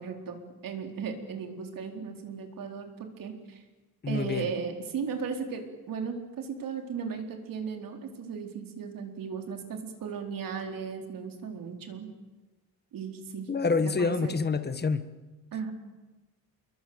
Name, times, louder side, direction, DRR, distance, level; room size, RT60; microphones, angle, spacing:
voice 1, 0.0-3.6 4.1-12.1 12.9-13.5 13.8-14.3 15.5-15.7, right 6 dB, 55° right, 4 dB, 4.2 m, -36 dB
voice 2, 4.0-4.5 13.5-15.1, left 4 dB, 25° left, 11 dB, 1.3 m, -27 dB
28.5 x 22.5 x 8.0 m, 1.2 s
cardioid pair, 165°, 39 cm